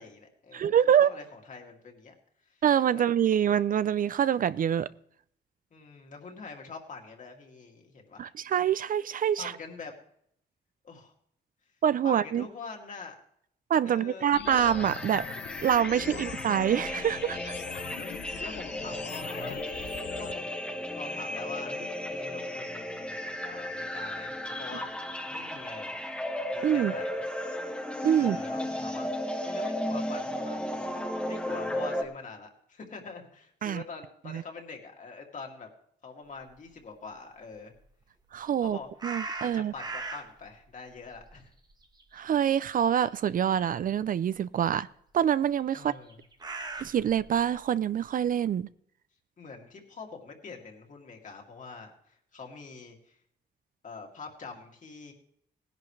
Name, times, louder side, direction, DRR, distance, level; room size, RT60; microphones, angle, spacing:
voice 1, 0.0-2.1 2.5-2.6 2.9-3.0 5.7-8.3 9.4-9.9 10.8-11.1 12.0-13.1 13.8-14.4 16.1-16.3 18.0-19.6 20.2-20.6 21.0-26.0 26.5-27.2 28.2-29.1 29.4-30.9 31.3-35.7 36.0-37.7 38.6-38.9 39.5-41.5 45.7-46.2 49.4-53.2 53.8-55.1, left 4 dB, 45° left, 2.4 m, -44 dB
voice 2, 0.5-1.1 2.6-4.9 8.2-9.5 11.8-12.4 13.7-15.3 15.6-17.5 26.6-26.9 28.0-28.4 33.6-33.8 34.3-34.4 38.3-39.7 42.1-44.9 45.1-45.9 46.8-48.7, right 9 dB, 50° right, 0.4 m, -25 dB
sound 1, 14.3-20.3, left 10 dB, 85° left, 0.6 m, -42 dB
sound 2, 14.4-32.0, left 1 dB, 5° left, 1.4 m, -35 dB
sound 3, 39.0-40.5 40.9-42.6 42.8-43.1 43.9-44.0 45.7-47.5, right 3 dB, 25° right, 1.1 m, -39 dB
19.0 x 10.5 x 3.2 m
wide cardioid pair, 155°, 18 cm